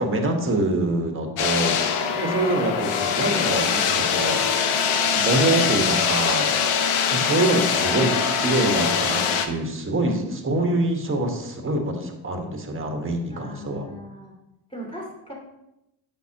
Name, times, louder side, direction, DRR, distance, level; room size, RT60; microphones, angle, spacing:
voice 1, 0.0-4.4 5.0-6.5 7.1-13.8, right 2 dB, 25° right, 3 dB, 1.5 m, -25 dB
sound 1, 1.4-9.5, left 7 dB, 85° left, 0.8 m, -23 dB
voice 2, 2.3-2.7 13.3-14.3 14.7-15.3, left 1 dB, 10° left, -3 dB, 2.7 m, -38 dB
8.3 x 5.8 x 3.0 m, 0.90 s
cardioid pair, 70°, 49 cm